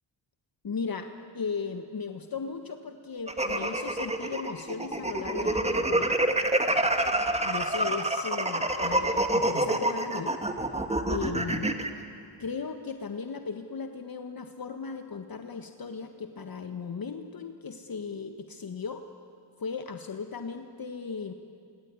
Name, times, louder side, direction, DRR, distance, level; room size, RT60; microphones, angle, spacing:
voice 1, 0.6-1.1 1.3-6.2 7.4-10.4 11.1-11.9 12.4-19.0 19.6-21.3, left 5 dB, 45° left, 6 dB, 1.6 m, -36 dB
sound 1, 3.3-11.9, right 1 dB, 15° right, 2.3 m, -27 dB
26.0 x 23.5 x 9.8 m, 2.4 s
cardioid pair, 60°, 48 cm